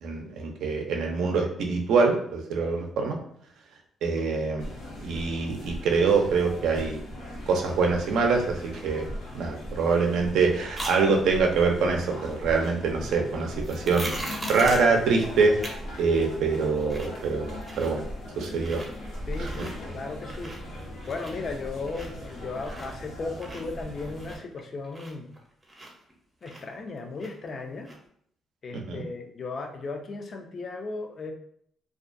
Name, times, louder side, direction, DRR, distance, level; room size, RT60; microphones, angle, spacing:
voice 1, 0.0-3.2 4.0-4.7 5.0-7.0 7.5-9.1 9.3-18.0 18.4-18.8 19.4-19.5 28.7-29.0, right 4 dB, 80° right, 2 dB, 0.4 m, -25 dB
sound 1, 4.6-24.4, equal, 80° left, 0.8 m, -39 dB
sound 2, 10.7-11.0 13.6-14.9 15.6-15.7 16.1-16.2 16.6-17.2 17.5-18.1 18.5-18.9 19.3-19.7 20.1-20.8 21.0-23.1 23.4-26.1 26.4-27.5 27.8-28.0, right 1 dB, 20° right, 0.6 m, -39 dB
voice 2, 19.3-20.6 21.1-25.3 26.4-27.9 28.6-31.3, left 3 dB, 45° left, 3 dB, 0.4 m, -36 dB
2.4 x 2.2 x 2.5 m, 0.65 s
cardioid pair, 90°, 0 cm